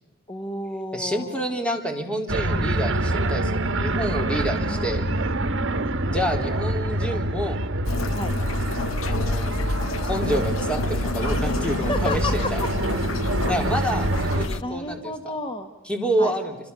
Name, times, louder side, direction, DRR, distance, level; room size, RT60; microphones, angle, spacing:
voice 1, 0.3-1.7 4.5-4.9 6.8-7.5 8.1-8.3 11.5-12.7 13.7-13.9 14.6-15.7 16.2-16.3, left 2 dB, 25° left, 6 dB, 1.5 m, -33 dB
voice 2, 0.9-5.0 6.1-7.6 9.1-9.5 10.0-12.6 13.5-15.1 15.9-16.6, equal, 5° left, 4 dB, 3.6 m, -28 dB
sound 1, 2.3-14.5, right 1 dB, 65° right, 1.5 m, -26 dB
sound 2, 7.9-14.6, left 2 dB, 70° left, 0.9 m, -28 dB
29.5 x 26.5 x 6.9 m, 0.97 s
head